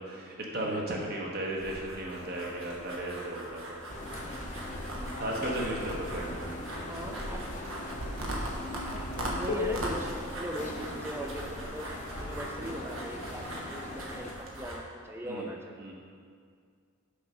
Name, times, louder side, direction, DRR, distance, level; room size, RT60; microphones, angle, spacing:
voice 1, 0.0-3.6 5.2-6.6 15.2-15.5 15.8-15.9, right 1 dB, 45° right, -2 dB, 1.2 m, -35 dB
sound 1, 1.6-14.8, right 1 dB, 75° right, 1.2 m, -40 dB
sound 2, 3.9-14.3, left 1 dB, 35° left, 0.8 m, -40 dB
sound 3, 4.7-9.7, left 5 dB, 85° left, 0.5 m, -42 dB
voice 2, 6.9-7.5 9.2-11.9 12.2-15.8, right 1 dB, 10° right, 2 dB, 0.6 m, -39 dB
6.6 x 5.2 x 5.6 m, 2.2 s
head